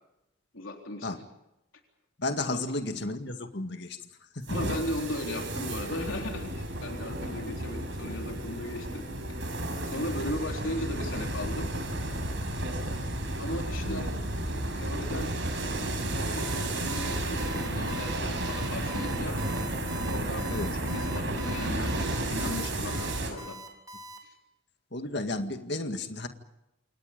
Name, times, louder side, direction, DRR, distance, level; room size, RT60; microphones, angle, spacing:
voice 1, 0.5-1.2 2.5-2.6 4.5-9.1 9.9-11.7 13.4-14.1 14.7-15.3 16.1-19.4 20.0-23.6 24.2-24.3, left 1 dB, 75° left, 2 dB, 3.8 m, -37 dB
voice 2, 2.2-4.0 4.3-4.6 10.1-10.2 13.9-14.1 20.5-20.7 24.9-26.3, left 2 dB, 55° left, 6 dB, 2.1 m, -33 dB
sound 1, 4.4-23.3, right 1 dB, 65° right, 6.2 m, -32 dB
Alarm, 16.4-24.2, equal, 20° right, 3.7 m, -44 dB
29.0 x 28.0 x 5.3 m, 0.91 s
head